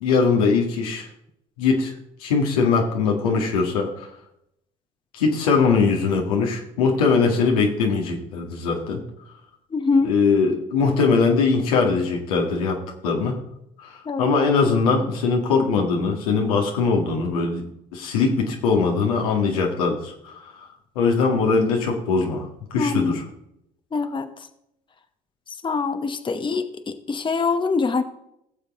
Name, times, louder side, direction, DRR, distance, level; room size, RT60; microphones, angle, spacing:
voice 1, 0.0-1.1 1.6-1.9 2.2-4.1 5.1-9.0 10.0-13.4 13.8-17.6 17.9-20.7 21.0-23.2, left 4 dB, 85° left, 1 dB, 1.9 m, -21 dB
voice 2, 9.7-10.1 14.1-14.4 22.8-23.2 23.9-24.3 25.6-28.0, left 4 dB, 25° left, 9 dB, 0.9 m, -24 dB
17.0 x 7.1 x 3.7 m, 0.79 s
hypercardioid pair, 60°, 18 cm